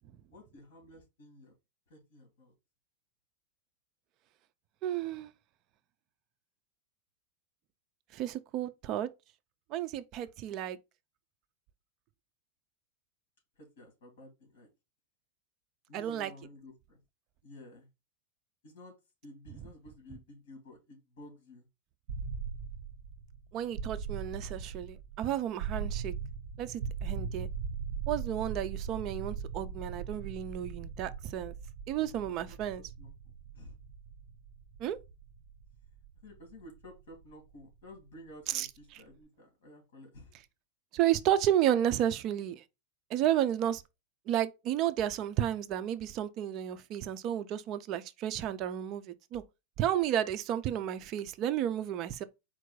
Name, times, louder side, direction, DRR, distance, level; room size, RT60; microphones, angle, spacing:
voice 1, 0.3-1.5 1.9-2.5 13.8-14.7 15.9-17.0 17.4-17.9 18.6-18.9 19.2-21.6 32.5-32.6 33.0-33.1 33.5-33.7 36.2-40.4, left 1 dB, 65° left, 2.4 m, -52 dB
voice 2, 4.8-5.3 8.1-9.1 9.7-10.8 15.9-16.3 23.5-26.1 26.6-27.5 28.1-31.5 31.9-32.8 34.8-35.0 38.5-39.0 40.9-42.6 43.1-43.8 44.3-49.4 49.8-52.2, right 11 dB, 30° right, 0.4 m, -32 dB
sound 1, 22.1-37.9, right 6 dB, 60° right, 0.7 m, -40 dB
4.5 x 2.5 x 4.6 m
supercardioid pair, 180°, 0 cm